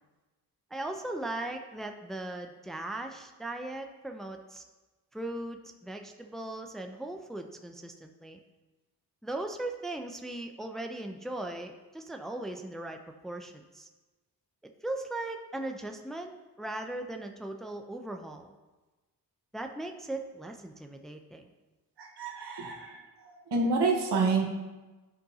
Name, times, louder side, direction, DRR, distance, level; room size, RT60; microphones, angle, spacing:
voice 1, 0.7-4.6 5.1-8.4 9.2-13.9 14.8-18.5 19.5-21.5, right 2 dB, ahead, 4 dB, 0.6 m, -38 dB
voice 2, 22.0-23.0 23.5-24.4, right 3 dB, 80° right, 1 dB, 1.4 m, -28 dB
10.5 x 5.2 x 2.8 m, 1.2 s
cardioid pair, 55°, 40 cm